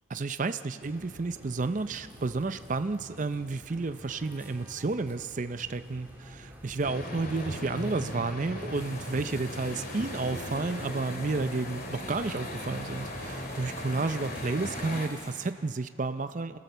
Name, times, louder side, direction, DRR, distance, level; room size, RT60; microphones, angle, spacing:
voice 1, 0.1-16.6, right 3 dB, 40° right, 12 dB, 0.5 m, -31 dB
sound 1, 0.8-14.8, equal, 10° right, 2.7 m, -48 dB
sound 2, 6.8-15.1, left 1 dB, 45° left, 2.3 m, -38 dB
sound 3, 8.7-15.5, left 3 dB, 15° left, 1.4 m, -52 dB
26.0 x 17.5 x 6.8 m, 2.4 s
head